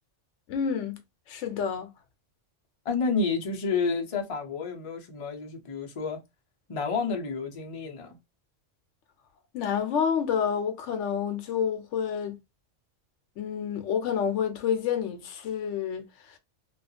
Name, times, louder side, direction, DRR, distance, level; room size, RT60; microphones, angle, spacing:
voice 1, 0.5-1.0 1.3-1.9 9.5-12.4 13.4-16.4, left 7 dB, 75° left, 0.9 m, -29 dB
voice 2, 2.8-6.2 6.7-8.2, left 4 dB, 35° left, 0.5 m, -30 dB
2.4 x 2.3 x 2.6 m
omnidirectional pair, 1.3 m